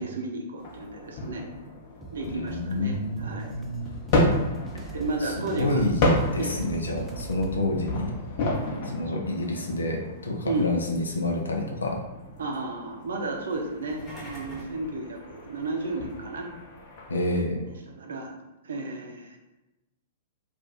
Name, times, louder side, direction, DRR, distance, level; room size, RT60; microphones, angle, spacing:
voice 1, 0.0-1.4 2.1-3.5 4.7-5.8 6.4-6.6 9.1-9.2 10.4-10.7 12.4-16.5 17.7-18.3 18.6-19.4, right 2 dB, 65° right, 2 dB, 0.6 m, -33 dB
sound 1, 0.6-17.4, left 1 dB, 45° left, 0.7 m, -32 dB
sound 2, 2.0-7.6, right 4 dB, 15° right, 0.5 m, -41 dB
voice 2, 2.3-4.2 5.2-6.0 6.3-8.1 8.9-12.0 17.1-17.6, left 2 dB, 75° left, 1 dB, 0.5 m, -29 dB
sound 3, 13.7-14.8, equal, 15° left, 1.0 m, -43 dB
2.4 x 2.3 x 3.8 m, 1.0 s
figure-of-eight pair, 105°, 0 cm